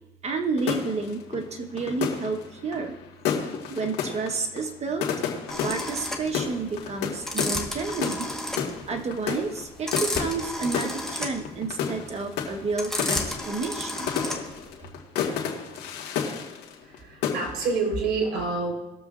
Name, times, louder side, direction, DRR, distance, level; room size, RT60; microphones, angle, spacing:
voice 1, 0.2-3.0 3.7-5.1 5.6-8.3 8.9-14.1, right 4 dB, 40° right, 5 dB, 1.2 m, -30 dB
sound 1, 0.6-17.0 17.2-17.8, left 7 dB, 90° left, 1.8 m, -31 dB
sound 2, 5.5-14.7, left 1 dB, 5° left, 1.4 m, -32 dB
voice 2, 16.8-18.8, right 4 dB, 80° right, 1 dB, 3.8 m, -28 dB
20.5 x 7.1 x 2.5 m, 0.97 s
cardioid pair, 110°, 17 cm